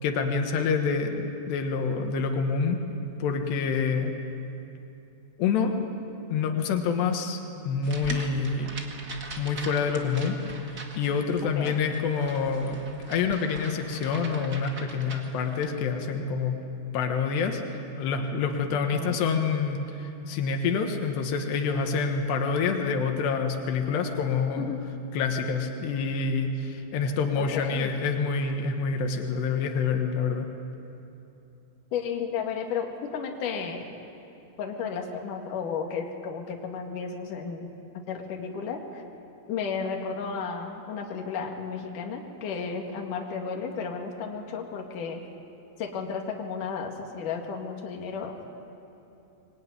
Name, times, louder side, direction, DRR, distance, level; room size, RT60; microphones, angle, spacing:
voice 1, 0.0-2.8 3.2-4.1 5.4-5.8 6.3-7.4 7.7-8.8 9.4-10.4 10.6-12.8 13.1-16.6 16.9-24.7 25.1-30.5, left 5 dB, 85° left, 4 dB, 3.6 m, -27 dB
sound 1, 7.8-15.7, right 3 dB, 35° right, 1.6 m, -42 dB
voice 2, 18.7-19.2 24.6-24.8 27.4-27.9 31.9-33.8 34.6-37.7 38.1-39.0 39.5-45.2 45.8-48.4, left 6 dB, 55° left, 2 dB, 3.3 m, -33 dB
25.0 x 21.5 x 9.7 m, 2.8 s
omnidirectional pair, 4.7 m